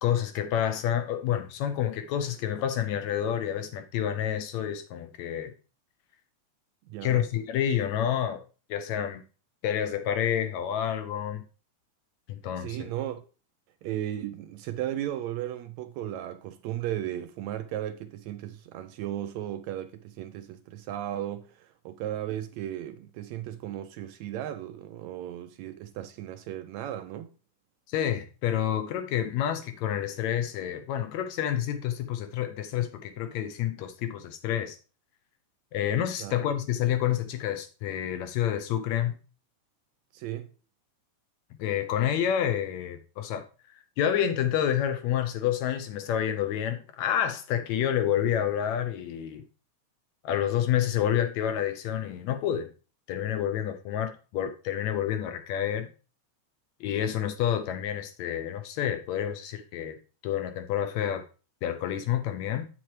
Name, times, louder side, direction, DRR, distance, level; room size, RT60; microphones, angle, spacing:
voice 1, 0.0-5.5 7.0-8.4 8.7-9.2 9.6-11.5 12.3-12.9 27.9-34.8 35.7-39.2 41.6-49.4 50.2-52.7 53.1-55.9 56.8-61.2 61.6-62.7, left 10 dB, 75° left, 1.8 m, -29 dB
voice 2, 6.9-7.2 12.6-13.2 13.8-27.3 36.2-36.4 40.1-40.5, right 12 dB, 80° right, 1.7 m, -35 dB
7.8 x 7.5 x 3.2 m
omnidirectional pair, 3.5 m